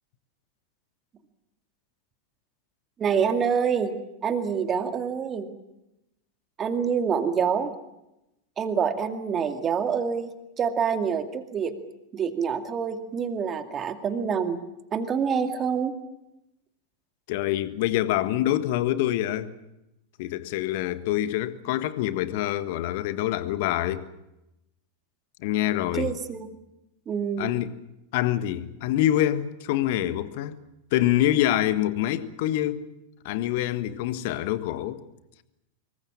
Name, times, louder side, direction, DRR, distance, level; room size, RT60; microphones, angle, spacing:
voice 1, 3.0-3.9 4.2-5.5 6.6-7.7 8.6-10.3 10.6-11.7 12.1-14.6 14.9-15.9 25.9-26.5 27.1-27.5, right 6 dB, 25° right, 2.3 m, -26 dB
voice 2, 17.3-19.5 20.2-24.0 25.4-26.1 27.4-27.7 28.1-30.6 30.9-32.9 33.2-35.0, left 13 dB, 50° left, 1.5 m, -25 dB
25.5 x 23.0 x 7.3 m
figure-of-eight pair, 90°, 0 cm